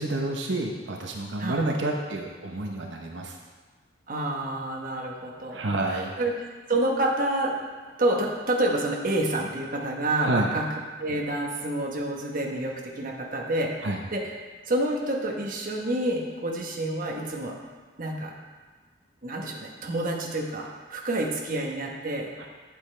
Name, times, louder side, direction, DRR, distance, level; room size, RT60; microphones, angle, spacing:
voice 1, 0.0-3.4 5.5-6.2 10.2-10.5 13.8-14.0 22.4-22.5, right 2 dB, 85° right, 1 dB, 0.8 m, -29 dB
voice 2, 1.4-1.7 4.1-6.4 6.7-7.5 8.0-10.7 11.0-14.3 14.7-17.6 18.0-18.3 19.2-22.3, right 1 dB, 50° right, 0 dB, 1.1 m, -28 dB
8.9 x 8.2 x 3.3 m, 1.4 s
head